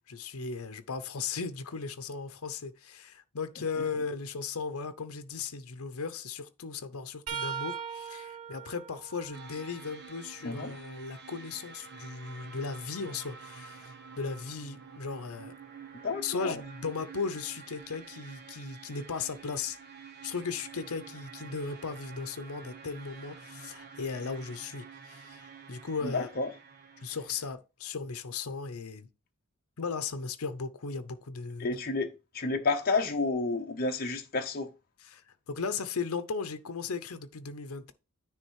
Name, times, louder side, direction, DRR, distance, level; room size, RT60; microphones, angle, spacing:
voice 1, 0.1-15.5 16.2-19.8 20.2-26.3 27.0-29.1 29.8-31.8 35.0-35.2 35.5-37.9, left 5 dB, 80° left, 0.7 m, -37 dB
sound 1, 7.3-11.0 11.6-13.5 16.4-16.6 17.8-18.0 19.3-19.4, right 7 dB, 85° right, 1.3 m, -42 dB
sound 2, 9.3-27.5, right 5 dB, 50° right, 1.1 m, -49 dB
voice 2, 16.0-16.6 26.0-26.5 31.6-32.1 32.3-34.7, left 3 dB, 45° left, 0.9 m, -30 dB
9.7 x 3.5 x 4.7 m
head